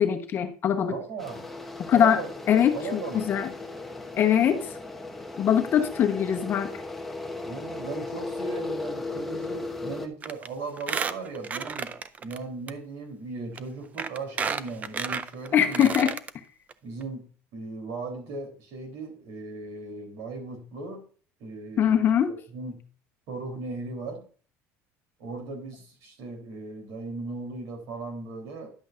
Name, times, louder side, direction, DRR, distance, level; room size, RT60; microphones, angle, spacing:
voice 1, 0.0-0.9 1.9-2.2 2.5-3.5 4.2-4.7 5.4-6.7 15.5-16.2 21.8-22.3, left 9 dB, 35° left, 5 dB, 1.0 m, -22 dB
voice 2, 0.9-1.5 1.9-2.3 2.7-3.3 7.5-11.9 12.2-15.9 16.8-17.3 17.5-21.0 21.4-22.8 23.3-24.3 25.2-28.7, right 3 dB, 65° right, 3 dB, 3.5 m, -37 dB
sound 1, 1.2-10.1, left 3 dB, 5° left, 0.9 m, -36 dB
Squeak, 10.2-10.5 10.8-12.4 12.7-12.8 13.6-13.7 14.0-16.3 16.7-16.8 17.0-17.1, right 6 dB, 25° right, 0.5 m, -31 dB
11.0 x 7.9 x 2.6 m, 0.39 s
cardioid pair, 150°, 6 cm